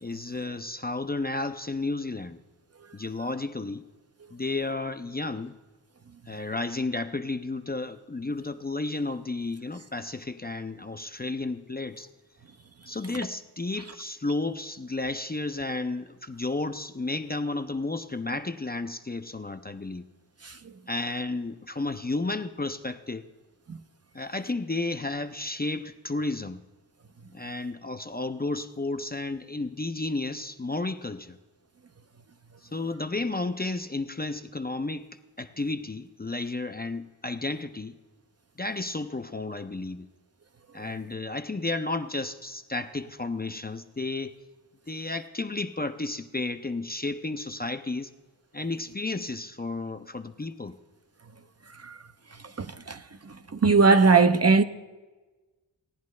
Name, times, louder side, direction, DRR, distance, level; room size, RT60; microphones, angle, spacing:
voice 1, 0.0-2.4 2.9-3.8 4.3-5.5 6.3-12.1 12.9-20.0 20.9-23.3 24.1-26.6 27.3-31.4 32.6-38.0 38.6-40.1 40.7-44.3 44.9-48.1 48.5-50.8, left 2 dB, 20° left, 0.5 m, -32 dB
voice 2, 52.6-53.0 53.6-54.6, right 4 dB, 35° right, 0.5 m, -18 dB
17.0 x 10.5 x 3.2 m
wide cardioid pair, 50°, 45 cm